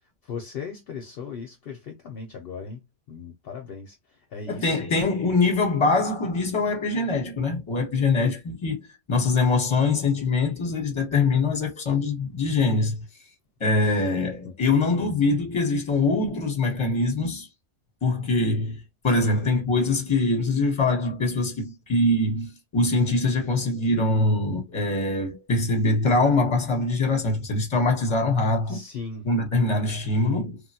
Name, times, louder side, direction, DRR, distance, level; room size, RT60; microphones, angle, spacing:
voice 1, 0.2-2.8 3.1-4.8 14.4-15.1 19.2-19.4 28.7-29.3, left 5 dB, 60° left, 0.7 m, -38 dB
voice 2, 4.5-13.0 13.6-17.5 18.0-18.8 19.0-28.8 29.2-30.6, left 3 dB, 25° left, 0.9 m, -23 dB
3.2 x 2.1 x 2.7 m
omnidirectional pair, 1.2 m